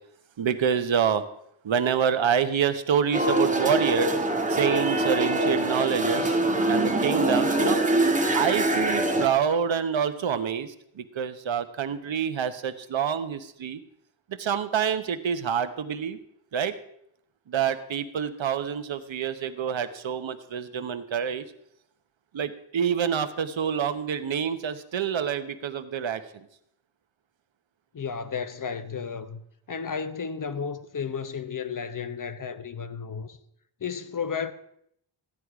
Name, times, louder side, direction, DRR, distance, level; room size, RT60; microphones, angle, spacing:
voice 1, 0.4-1.2 1.6-4.2 4.5-6.4 6.7-7.8 8.3-13.8 14.4-16.2 16.5-16.7 17.5-21.4 22.3-26.2, right 8 dB, 70° right, 1.1 m, -27 dB
sound 1, 3.1-9.3, right 1 dB, 15° right, 1.4 m, -24 dB
voice 2, 27.9-29.4 29.7-33.4 33.8-34.5, left 6 dB, 40° left, 0.9 m, -33 dB
15.0 x 9.8 x 4.8 m
wide cardioid pair, 130°, 48 cm